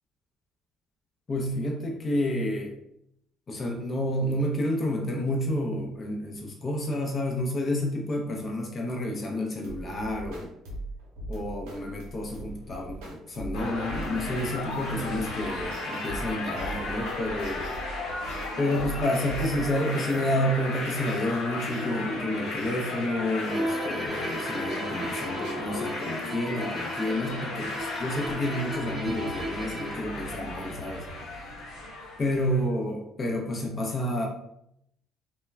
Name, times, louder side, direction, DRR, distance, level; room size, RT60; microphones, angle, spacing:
voice 1, 1.3-2.7 3.5-10.5 11.3-17.7 18.6-31.0 32.2-34.3, left 1 dB, 40° left, 1 dB, 0.5 m, -30 dB
sound 1, 9.6-20.3, right 2 dB, 85° right, 0.7 m, -40 dB
sound 2, 13.5-32.6, left 2 dB, 85° left, 1.0 m, -35 dB
Bowed string instrument, 23.5-30.2, right 1 dB, 25° right, 0.5 m, -37 dB
2.2 x 2.2 x 3.2 m, 0.77 s
supercardioid pair, 65°, 0 cm